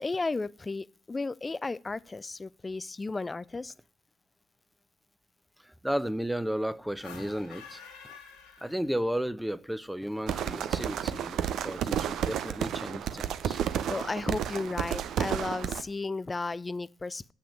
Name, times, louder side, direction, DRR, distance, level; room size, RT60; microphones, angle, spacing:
voice 1, 0.0-3.7 13.6-17.3, left 3 dB, 30° left, 0.5 m, -34 dB
voice 2, 5.6-7.8 8.6-13.6, equal, 5° right, 0.8 m, -33 dB
sound 1, 7.0-9.3, left 6 dB, 75° left, 2.0 m, -49 dB
sound 2, 10.3-15.8, right 10 dB, 65° right, 0.6 m, -31 dB
8.6 x 5.8 x 6.5 m
hypercardioid pair, 40°, 0 cm